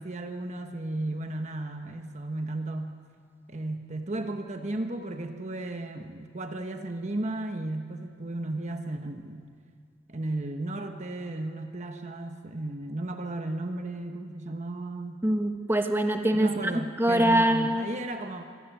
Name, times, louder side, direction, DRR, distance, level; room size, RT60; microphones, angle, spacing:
voice 1, 0.0-2.9 3.5-9.5 10.1-15.2 16.3-18.4, right 2 dB, 40° right, 5 dB, 1.1 m, -34 dB
voice 2, 15.2-16.7 17.0-17.8, right 1 dB, 10° right, 5 dB, 1.4 m, -24 dB
24.5 x 17.5 x 9.1 m, 2.1 s
head